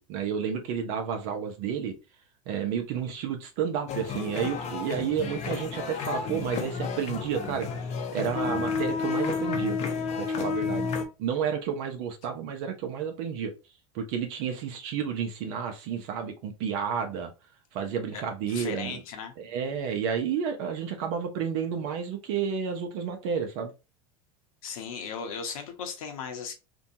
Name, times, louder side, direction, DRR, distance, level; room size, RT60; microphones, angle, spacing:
voice 1, 0.1-2.0 2.5-7.7 8.1-9.8 10.2-10.9 11.2-13.5 13.9-17.3 17.7-19.0 19.4-23.7, right 7 dB, 60° right, 0.6 m, -31 dB
sound 1, 3.9-11.1, left 5 dB, 40° left, 0.6 m, -31 dB
voice 2, 18.1-19.3 24.6-26.5, left 6 dB, 80° left, 0.8 m, -37 dB
2.6 x 2.2 x 2.7 m
hypercardioid pair, 105°, 18 cm